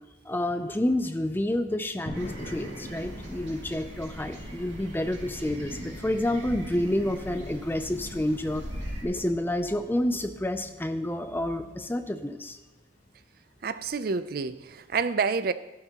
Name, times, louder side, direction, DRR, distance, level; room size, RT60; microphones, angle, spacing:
voice 1, 0.3-8.7 9.0-12.6, left 1 dB, 10° left, 9 dB, 0.4 m, -29 dB
sound 1, 2.1-15.0, equal, 45° left, 2.9 m, -48 dB
sound 2, 2.1-9.0, equal, 80° right, 2.5 m, -40 dB
sound 3, 2.2-11.9, equal, 65° left, 1.2 m, -51 dB
voice 2, 13.6-15.5, right 5 dB, 50° right, 13 dB, 0.4 m, -28 dB
12.5 x 12.5 x 2.9 m, 1.1 s
head